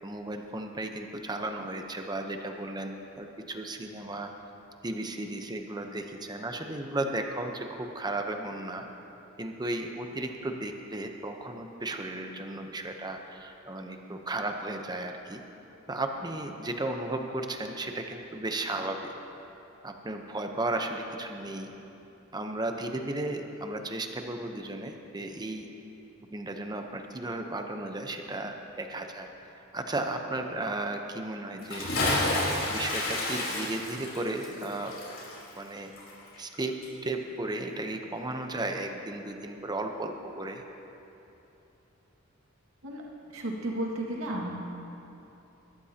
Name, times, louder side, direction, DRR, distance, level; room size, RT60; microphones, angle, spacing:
voice 1, 0.0-4.3 4.8-8.9 9.4-15.4 15.9-19.1 19.8-21.7 22.3-25.7 26.3-32.2 32.7-35.0 35.5-35.9 36.4-36.7 37.0-40.6, right 2 dB, 20° right, 4 dB, 0.9 m, -35 dB
Bathtub (filling or washing) / Splash splatter, 31.6-36.6 36.8-36.9, left 2 dB, 75° left, 3.6 m, -30 dB
voice 2, 43.3-44.5, right 1 dB, 90° right, -2 dB, 2.0 m, -33 dB
21.0 x 13.5 x 2.9 m, 2.9 s
head